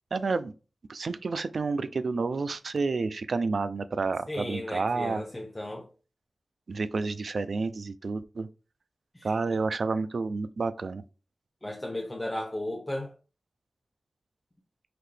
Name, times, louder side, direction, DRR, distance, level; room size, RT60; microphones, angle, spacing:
voice 1, 0.1-0.5 0.9-5.2 6.7-8.5 9.2-11.0, right 4 dB, 65° right, 0.4 m, -30 dB
voice 2, 4.3-5.9 9.1-9.6 11.6-13.1, left 1 dB, 20° left, 0.8 m, -35 dB
5.9 x 2.7 x 3.3 m
wide cardioid pair, 80°, 0 cm